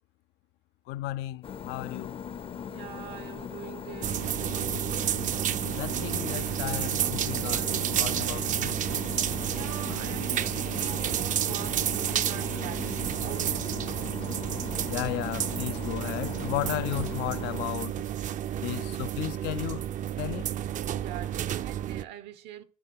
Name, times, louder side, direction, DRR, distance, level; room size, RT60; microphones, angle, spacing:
voice 1, 0.9-2.2 5.7-8.9 14.9-18.1 18.6-19.8 20.2-20.5, left 16 dB, 85° left, 0.4 m, -34 dB
sound 1, 1.4-17.7, left 7 dB, 35° left, 0.5 m, -40 dB
voice 2, 2.7-5.0 9.2-14.0 20.9-22.6, right 11 dB, 85° right, 0.9 m, -43 dB
sound 2, 4.0-22.0, right 11 dB, 50° right, 0.4 m, -30 dB
7.5 x 5.8 x 4.6 m
cardioid pair, 110°, 17 cm